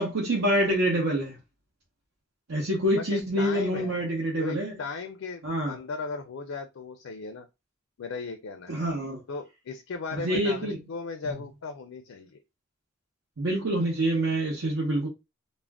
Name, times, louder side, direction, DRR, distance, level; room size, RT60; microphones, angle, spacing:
voice 1, 0.0-1.4 2.5-4.7 5.4-5.8 8.7-9.2 10.2-10.8 13.4-15.1, right 1 dB, 80° right, 0.8 m, -26 dB
voice 2, 2.9-4.0 4.4-7.5 8.0-8.7 9.3-12.4, left 4 dB, 80° left, 0.4 m, -37 dB
2.4 x 2.1 x 3.4 m
head